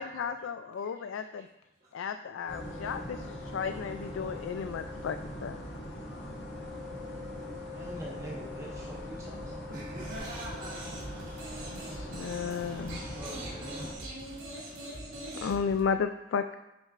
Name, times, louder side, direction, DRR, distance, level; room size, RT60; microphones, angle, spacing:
voice 1, 0.0-1.5 1.9-5.6 11.7-13.0 15.4-16.6, left 6 dB, 85° left, 8 dB, 0.3 m, -34 dB
voice 2, 0.8-1.5 1.8-1.9 4.8-4.9 9.4-11.6 12.9-13.3 14.2-14.4, right 1 dB, 45° right, -7 dB, 1.2 m, -47 dB
sound 1, 2.5-13.9, left 1 dB, 65° left, 2.0 m, -41 dB
voice 3, 7.6-9.7 11.3-13.9, right 1 dB, 15° right, -3 dB, 1.0 m, -47 dB
sound 2, 10.0-15.8, right 1 dB, 85° right, 1.9 m, -43 dB
9.8 x 6.1 x 2.5 m, 0.97 s
head